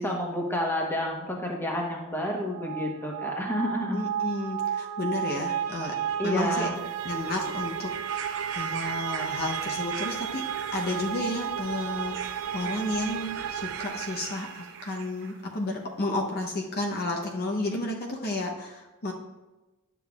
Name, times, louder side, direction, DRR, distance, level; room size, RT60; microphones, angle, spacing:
voice 1, 0.0-4.0 6.2-6.8, equal, 10° left, 0 dB, 1.1 m, -30 dB
sound 1, 2.1-14.9, right 9 dB, 80° right, 0.3 m, -33 dB
voice 2, 3.9-5.9 6.2-6.7 7.0-10.4 10.7-19.1, left 2 dB, 50° left, 0 dB, 0.8 m, -32 dB
sound 2, 6.7-15.4 16.3-16.4, right 6 dB, 60° right, 0.7 m, -42 dB
11.0 x 7.0 x 2.4 m, 1.1 s
head